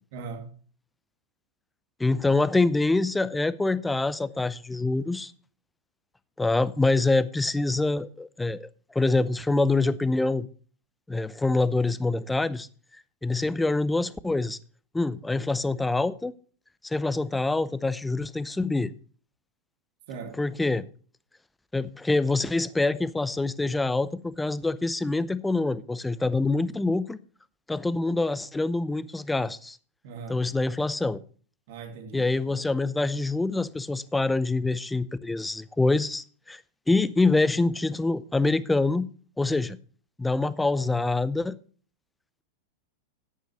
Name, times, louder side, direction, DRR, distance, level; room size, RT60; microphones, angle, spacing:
voice 1, 0.1-0.5 20.1-20.4 30.0-30.4 31.7-32.5, right 5 dB, 50° right, 2.4 m, -40 dB
voice 2, 2.0-5.3 6.4-10.5 11.1-12.7 13.2-14.6 14.9-16.3 16.8-18.9 20.4-20.9 21.7-27.2 27.7-29.8 30.3-31.2 32.1-36.6 36.9-39.1 39.4-39.8 40.2-41.6, left 3 dB, 5° left, 0.6 m, -25 dB
14.0 x 10.0 x 3.1 m
figure-of-eight pair, 90°, 0 cm